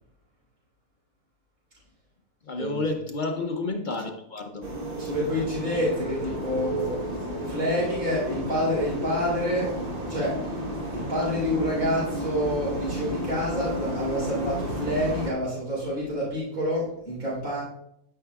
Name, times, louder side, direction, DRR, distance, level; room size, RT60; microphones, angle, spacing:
voice 1, 2.5-4.7, left 3 dB, 50° left, 0.6 m, -30 dB
sound 1, 4.6-15.3, right 1 dB, 35° right, 1.4 m, -32 dB
voice 2, 5.0-7.0 7.5-9.7 10.1-10.4 10.9-17.6, equal, 65° right, 3.9 m, -28 dB
12.5 x 5.6 x 2.3 m
omnidirectional pair, 1.6 m